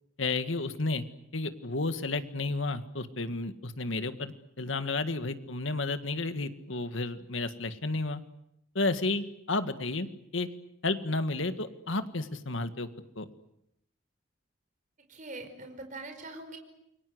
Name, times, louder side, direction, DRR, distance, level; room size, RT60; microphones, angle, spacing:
voice 1, 0.2-1.0 1.3-8.2 8.8-10.1 10.3-10.5 10.8-12.9 13.2-13.3, left 3 dB, 80° left, 9 dB, 1.9 m, -32 dB
voice 2, 15.1-16.6, right 2 dB, 40° right, 6 dB, 5.0 m, -42 dB
29.0 x 24.0 x 8.0 m, 0.80 s
head